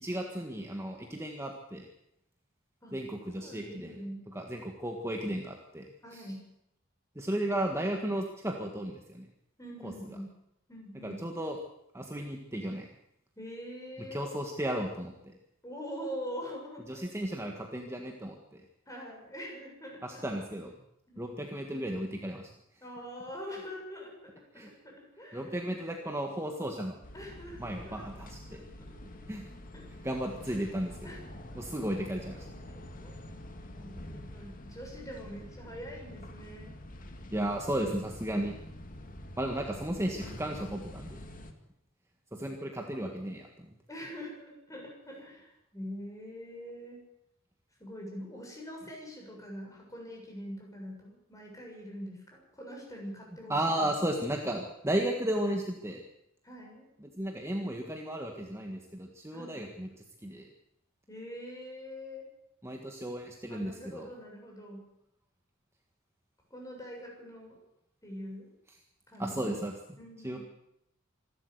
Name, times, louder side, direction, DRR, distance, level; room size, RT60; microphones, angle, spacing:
voice 1, 0.0-1.9 2.9-3.9 4.3-5.8 6.1-6.2 7.1-9.3 9.8-9.9 11.0-11.6 11.9-12.9 14.1-15.4 16.9-18.6 20.0-20.7 21.2-22.5 24.5-24.7 25.3-27.0 27.6-28.6 29.3-29.4 30.0-31.2 31.5-32.4 37.3-38.6 39.4-41.2 42.3-43.7 53.5-56.0 57.0-59.9 60.2-60.5 62.6-64.1 69.2-69.7 70.2-70.4, right 1 dB, 15° right, 2 dB, 1.7 m, -34 dB
voice 2, 3.4-4.2 6.0-6.4 9.6-10.2 10.7-11.2 13.4-14.3 15.6-17.1 18.9-20.0 21.1-21.3 22.8-25.5 27.1-28.0 28.5-29.3 29.7-30.2 30.5-30.6 31.0-31.3 32.4-33.2 33.7-36.8 43.9-47.0 47.8-54.1 56.4-56.9 59.3-59.6 61.1-62.3 63.5-64.8 66.5-67.6 68.0-68.5 69.1-69.5 70.0-70.4, equal, 15° left, 0 dB, 7.2 m, -44 dB
sound 1, 27.0-41.5, left 1 dB, 40° left, 2.2 m, -46 dB
26.0 x 12.5 x 8.2 m, 0.82 s
head